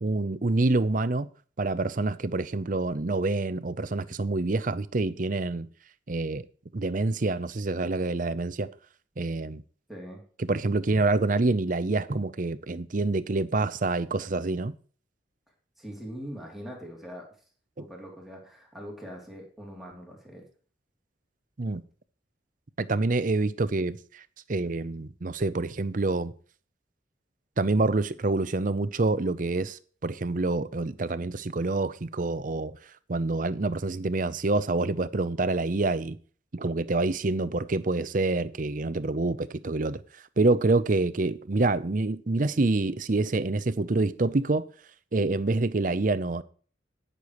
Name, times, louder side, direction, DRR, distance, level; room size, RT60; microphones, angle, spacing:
voice 1, 0.0-1.3 1.6-5.7 6.1-6.4 6.7-8.7 9.2-9.6 10.5-14.7 17.8-17.9 21.6-21.8 22.8-24.2 24.5-26.3 27.6-32.8 33.1-36.2 36.5-40.0 40.4-44.6 45.1-46.4, right 2 dB, 45° right, 0.6 m, -27 dB
voice 2, 9.9-10.2 15.8-17.2 17.8-20.5, equal, ahead, 2.9 m, -42 dB
18.0 x 6.7 x 3.1 m
head